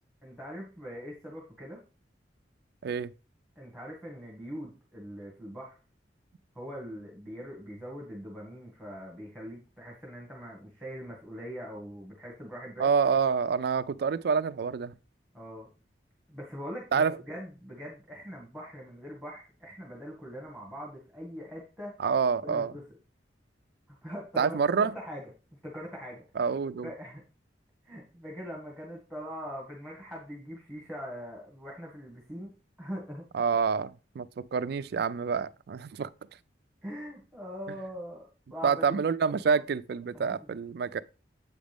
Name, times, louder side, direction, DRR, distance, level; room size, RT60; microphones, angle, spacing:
voice 1, 0.2-1.8 3.5-5.8 6.5-12.9 15.3-15.7 16.3-22.0 22.4-22.8 23.9-26.2 26.8-27.2 27.8-32.5 32.8-33.2 36.8-39.1 39.5-39.6 40.1-40.4, equal, ahead, 1.8 m, -42 dB
voice 2, 12.8-14.9 16.9-17.1 22.0-22.7 24.4-24.9 26.4-26.9 33.3-36.1 38.6-41.0, right 6 dB, 60° right, 0.3 m, -27 dB
7.9 x 5.1 x 3.5 m
head